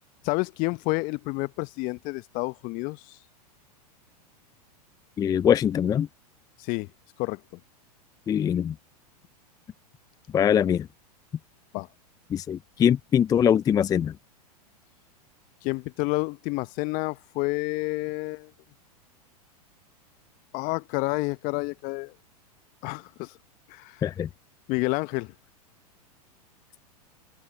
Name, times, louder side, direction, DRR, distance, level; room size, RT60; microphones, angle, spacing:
voice 1, 0.2-3.2 6.6-6.9 7.2-7.6 11.7-11.9 15.6-18.5 20.5-22.1 22.8-23.4 23.7-24.1 24.7-25.3, left 25 dB, 45° left, 0.9 m, -29 dB
voice 2, 5.2-6.1 8.3-8.7 10.3-10.9 12.3-14.1 24.0-24.3, left 9 dB, 20° left, 0.5 m, -22 dB
hypercardioid pair, 100°, 20 cm